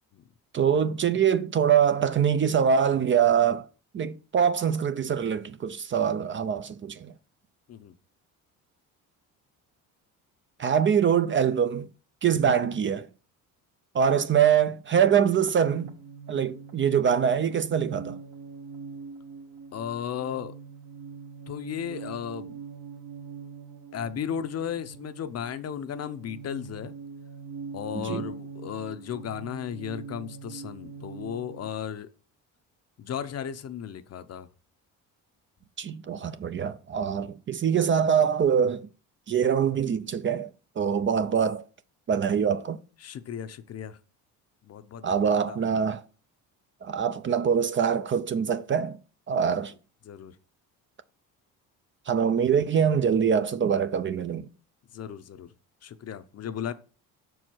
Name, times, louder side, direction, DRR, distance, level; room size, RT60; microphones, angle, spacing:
voice 1, 0.5-3.6 3.9-7.1 10.6-11.9 12.2-13.1 13.9-15.9 16.3-18.2 28.0-28.2 35.8-38.9 39.3-40.5 40.8-41.6 42.1-42.8 45.0-46.0 46.8-49.0 49.3-49.7 52.1-54.5, right 7 dB, 35° right, 0.5 m, -24 dB
sound 1, 15.0-31.7, right 5 dB, 65° right, 1.7 m, -43 dB
voice 2, 19.7-20.5 21.5-22.6 23.9-26.9 27.7-32.1 33.0-34.5 43.0-44.0 44.6-45.8 50.0-50.4 54.9-55.5 55.8-56.7, left 9 dB, 45° left, 0.6 m, -35 dB
6.2 x 4.7 x 6.0 m
cardioid pair, 105°, 36 cm